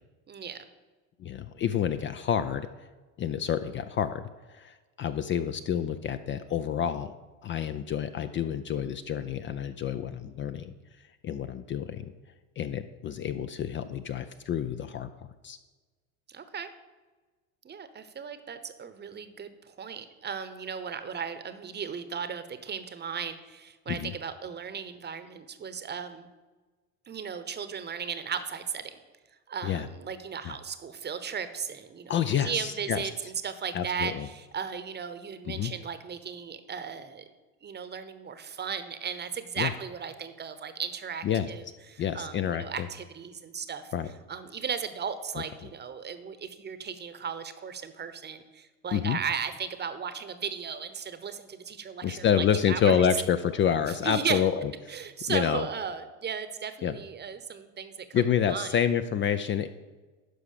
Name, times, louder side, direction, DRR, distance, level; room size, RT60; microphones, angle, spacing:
voice 1, 0.3-0.7 16.3-16.7 17.6-26.3 27.1-29.0 29.5-37.2 37.6-41.6 41.9-43.9 44.3-53.0 53.9-54.4 54.9-58.2 58.5-58.8, right 7 dB, 25° right, 11 dB, 0.9 m, -36 dB
voice 2, 1.2-2.7 3.2-4.2 4.5-7.1 7.4-10.7 11.2-12.1 12.6-15.1 15.4-15.6 23.9-24.1 29.6-29.9 30.4-30.6 32.1-33.0 33.7-34.3 35.5-35.7 39.6-39.7 41.2-41.5 42.0-42.9 43.9-44.1 48.9-49.2 52.0-54.9 55.3-55.6 56.8-56.9 58.1-59.7, left 8 dB, 30° left, 11 dB, 0.4 m, -28 dB
11.5 x 4.8 x 6.6 m, 1.3 s
hypercardioid pair, 95°, 42 cm